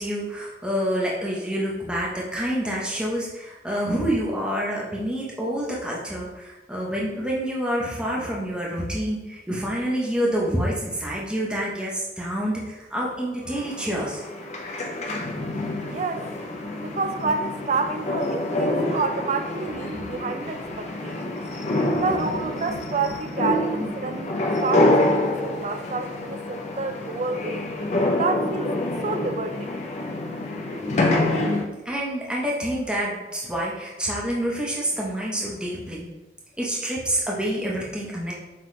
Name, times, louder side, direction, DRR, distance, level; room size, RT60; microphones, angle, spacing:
voice 1, 0.0-14.2 19.9-20.0 21.9-22.0 23.8-23.9 31.8-36.1 36.6-38.3, equal, 5° right, -4 dB, 0.7 m, -27 dB
sound 1, 13.5-31.7, left 1 dB, 40° left, 0.5 m, -26 dB
voice 2, 15.9-16.3 16.8-21.4 21.9-27.6 28.2-28.7 29.0-29.7, right 4 dB, 40° right, 8 dB, 0.3 m, -29 dB
5.8 x 2.9 x 3.1 m, 1.1 s
head